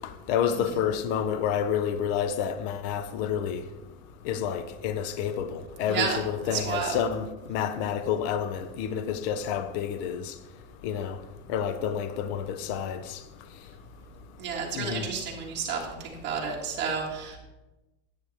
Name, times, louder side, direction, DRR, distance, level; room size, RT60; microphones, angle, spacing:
voice 1, 0.3-3.6 4.2-10.3 10.8-11.2 11.5-13.0 14.7-15.0, left 8 dB, 50° left, 0.7 m, -29 dB
voice 2, 5.8-7.0 14.4-17.4, right 6 dB, 25° right, 1.8 m, -31 dB
9.6 x 8.0 x 3.5 m
supercardioid pair, 170°, 43 cm